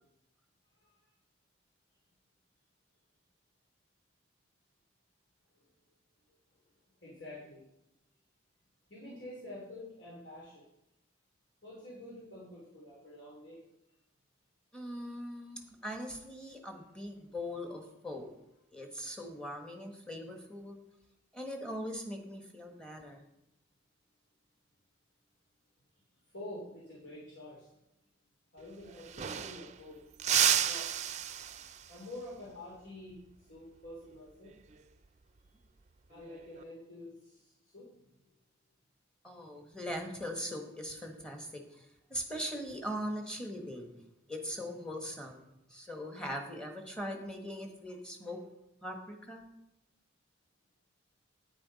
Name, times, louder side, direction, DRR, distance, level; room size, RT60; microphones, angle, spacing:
voice 1, 7.0-7.7 8.9-10.7 11.6-13.7 26.3-27.7 28.5-30.0 30.7-30.9 31.9-34.5 35.4-35.6 36.1-38.3, left 1 dB, 85° left, -5 dB, 3.1 m, -48 dB
voice 2, 14.7-18.3 18.7-20.8 21.3-23.2 39.2-43.9 44.3-48.4 48.8-49.5, equal, 5° left, 3 dB, 1.3 m, -41 dB
sound 1, 28.6-28.7 28.9-29.8 30.2-32.0 34.5-34.7 36.2-36.6, right 10 dB, 40° right, 0.4 m, -31 dB
10.0 x 9.1 x 4.1 m, 0.84 s
head